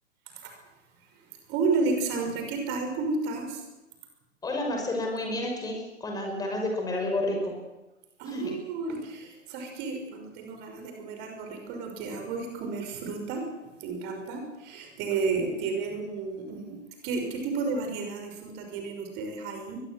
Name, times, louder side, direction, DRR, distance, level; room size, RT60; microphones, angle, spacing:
voice 1, 1.5-3.6 8.2-13.4 13.8-19.8, right 4 dB, 30° right, 4 dB, 5.9 m, -32 dB
voice 2, 4.4-7.5 8.3-8.6 15.3-15.4, left 1 dB, 10° left, 2 dB, 5.6 m, -30 dB
23.5 x 20.5 x 7.8 m, 1.0 s
figure-of-eight pair, 115°, 36 cm